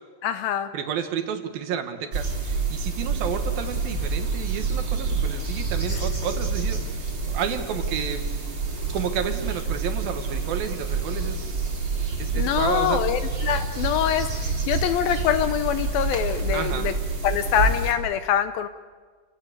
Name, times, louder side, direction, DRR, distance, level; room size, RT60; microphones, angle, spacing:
voice 1, 0.2-0.7 12.3-16.9 17.2-18.7, left 10 dB, 75° left, 11 dB, 2.3 m, -24 dB
voice 2, 0.7-6.8 7.3-8.3 8.9-11.6 12.2-13.0 16.5-16.9, right 8 dB, 65° right, 7 dB, 3.1 m, -31 dB
sound 1, 2.1-17.9, right 4 dB, 30° right, 4.2 m, -27 dB
29.0 x 18.0 x 8.5 m, 1.5 s
omnidirectional pair, 4.7 m